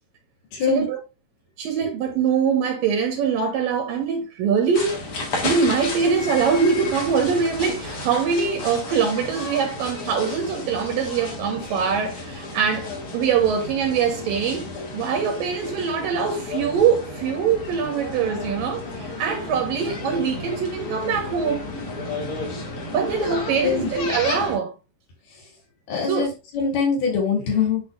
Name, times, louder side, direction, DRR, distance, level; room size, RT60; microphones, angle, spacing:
voice 1, 0.5-0.8 1.8-1.9 23.6-23.9 25.3-25.4 25.9-27.8, left 6 dB, 65° left, 5.0 m, -23 dB
voice 2, 1.6-5.0 5.4-14.7 14.9-21.7 22.9-24.7 26.1-26.3, right 6 dB, 65° right, 2.7 m, -23 dB
sound 1, 4.7-24.6, left 2 dB, 45° left, 2.2 m, -32 dB
10.5 x 4.0 x 2.5 m
omnidirectional pair, 4.7 m